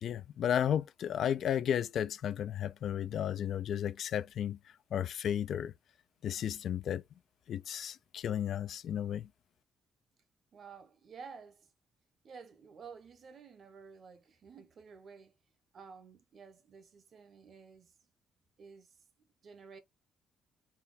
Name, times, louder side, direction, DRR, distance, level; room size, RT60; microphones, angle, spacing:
voice 1, 0.0-4.6 4.9-5.7 6.2-7.0 7.5-9.3, left 9 dB, 65° left, 0.3 m, -33 dB
voice 2, 10.5-11.7 12.2-15.3 15.7-17.9 18.6-18.9 19.4-19.8, right 5 dB, 55° right, 1.0 m, -52 dB
4.2 x 2.2 x 3.9 m
cardioid pair, 90°, 0 cm